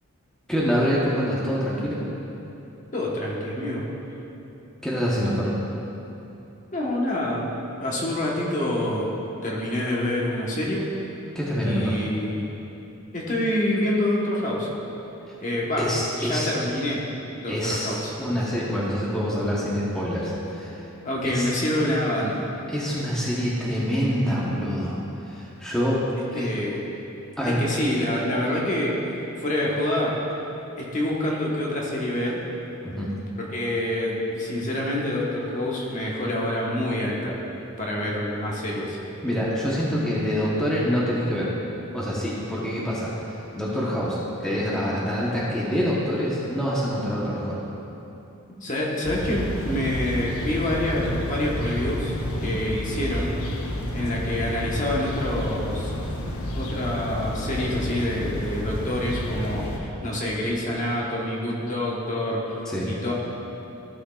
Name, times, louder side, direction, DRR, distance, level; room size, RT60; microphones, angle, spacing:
voice 1, 0.5-2.0 4.8-5.5 11.3-12.0 15.3-15.4 15.8-16.5 17.5-20.8 21.2-21.5 22.7-25.0 25.2-26.0 26.3-26.5 27.4-27.6 32.8-33.1 39.2-41.5 41.9-47.6 52.4-52.5 62.7-62.9, equal, 5° left, -7 dB, 1.0 m, -26 dB
voice 2, 2.9-3.9 6.7-7.4 7.8-9.1 9.4-10.9 11.6-12.5 13.1-14.7 15.4-15.9 16.2-17.0 17.4-18.1 21.0-22.4 26.3-26.8 27.5-30.2 30.8-32.4 33.5-37.4 37.8-39.0 48.6-52.1 52.4-53.3 53.9-55.9 56.5-63.1, left 1 dB, 35° left, -4 dB, 1.2 m, -27 dB
sound 1, 49.0-59.8, left 1 dB, 80° left, 0.8 m, -30 dB
15.0 x 6.2 x 2.4 m, 3.0 s
head